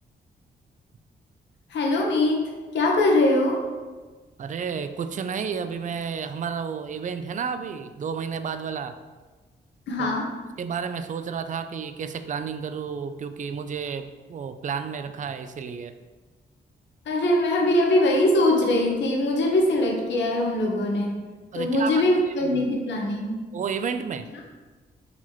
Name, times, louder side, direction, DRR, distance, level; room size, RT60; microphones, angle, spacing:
voice 1, 1.7-3.6 9.9-10.3 17.0-21.2 21.5-23.4, left 1 dB, 80° left, 0 dB, 0.9 m, -22 dB
voice 2, 4.4-9.0 10.0-10.2 10.6-15.9 21.5-22.0 22.4-22.5 23.5-24.3, right 6 dB, 45° right, 10 dB, 0.4 m, -31 dB
4.1 x 3.0 x 4.3 m, 1.3 s
cardioid pair, 80°, 18 cm